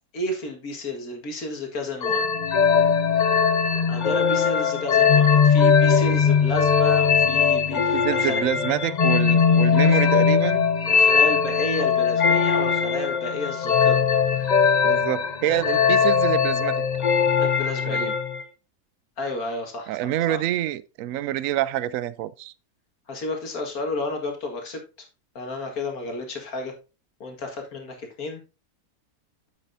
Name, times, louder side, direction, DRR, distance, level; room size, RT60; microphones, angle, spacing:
voice 1, 0.1-2.3 3.9-8.4 9.8-10.1 10.9-14.0 17.4-18.2 19.2-20.4 23.1-24.8 25.4-26.7 27.2-28.4, left 2 dB, 65° left, 2.3 m, -31 dB
sound 1, 2.0-18.4, left 6 dB, 45° left, 0.5 m, -20 dB
voice 2, 7.7-10.7 14.8-16.7 17.9-18.1 19.9-22.5, right 13 dB, 70° right, 0.9 m, -27 dB
9.3 x 7.5 x 2.7 m
omnidirectional pair, 1.6 m